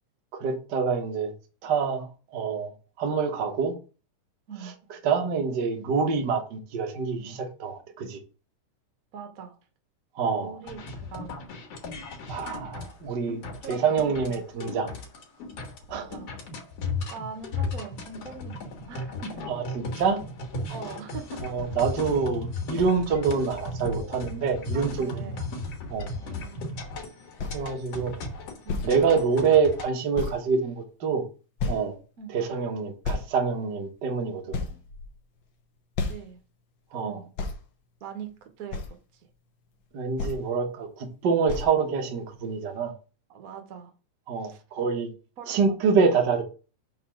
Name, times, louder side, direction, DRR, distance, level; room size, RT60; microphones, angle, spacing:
voice 1, 0.4-1.3 1.6-2.7 3.0-3.7 5.0-8.2 10.1-10.6 12.3-13.4 13.7-14.9 15.9-16.0 19.5-20.2 21.4-25.3 25.9-26.1 27.5-28.1 28.8-31.2 31.7-32.0 32.3-34.7 36.9-37.2 39.9-42.9 44.3-45.1 45.5-46.4, right 5 dB, 60° right, 1.2 m, -26 dB
voice 2, 9.1-9.6 10.4-11.5 13.6-13.8 15.9-16.4 17.1-19.5 20.7-21.5 24.7-25.4 26.1-26.8 28.0-28.1 28.6-29.0 32.2-32.4 36.0-36.4 36.9-37.3 38.0-39.3 43.3-43.9 44.4-44.6 45.4-45.6, right 6 dB, 90° right, 0.7 m, -42 dB
sound 1, 10.6-29.9, left 2 dB, 60° left, 2.5 m, -36 dB
sound 2, 27.4-27.6 28.7-28.9 29.6-29.7 30.2-30.4 31.6-32.0 33.0-33.3 34.0-34.1 34.5-35.4 36.0-36.3 37.4-37.6 38.7-38.9 40.2-40.4 41.5-41.7, left 3 dB, 75° left, 1.0 m, -31 dB
5.8 x 4.0 x 6.2 m
omnidirectional pair, 3.5 m